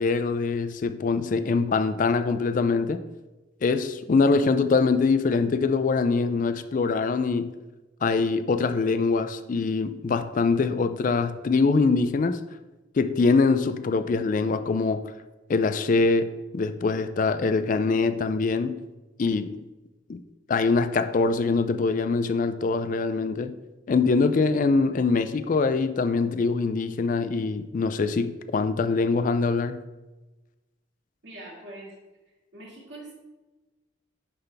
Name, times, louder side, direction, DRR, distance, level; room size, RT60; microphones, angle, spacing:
voice 1, 0.0-3.0 3.6-7.5 8.0-12.4 13.0-15.1 15.5-18.8 19.2-19.6 20.1-20.2 20.5-23.6 23.9-29.8, left 4 dB, 45° left, 0.3 m, -23 dB
voice 2, 31.2-31.9 32.5-33.2, right 2 dB, 70° right, 2.5 m, -43 dB
11.0 x 4.0 x 3.3 m
head